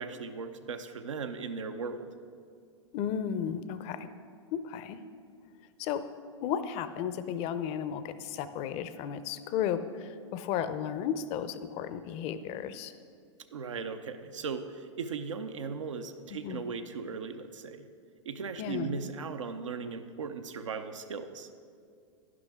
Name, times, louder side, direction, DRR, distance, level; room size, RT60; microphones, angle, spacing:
voice 1, 0.0-2.1 13.5-17.9 18.2-21.6, right 5 dB, 85° right, 7 dB, 0.8 m, -38 dB
voice 2, 2.9-4.1 4.5-5.0 5.8-6.1 6.4-12.9 16.4-16.6 18.6-19.0, left 8 dB, 40° left, 12 dB, 0.6 m, -34 dB
11.0 x 11.0 x 3.6 m, 2.3 s
hypercardioid pair, 105°, 16 cm